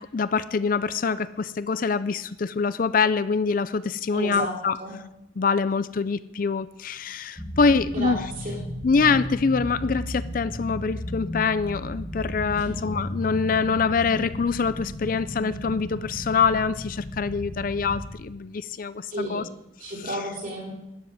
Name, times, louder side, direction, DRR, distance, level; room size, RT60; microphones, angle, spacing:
voice 1, 0.0-4.8 5.4-8.2 8.8-19.4 20.1-20.2, left 5 dB, 45° left, 15 dB, 0.4 m, -25 dB
voice 2, 4.1-4.5 4.8-5.0 7.9-8.6 12.5-12.7 19.1-19.4 19.8-20.7, right 1 dB, 45° right, -2 dB, 4.4 m, -32 dB
sound 1, 7.4-18.1, equal, 15° left, 2.2 m, -35 dB
13.0 x 7.3 x 9.2 m, 0.87 s
head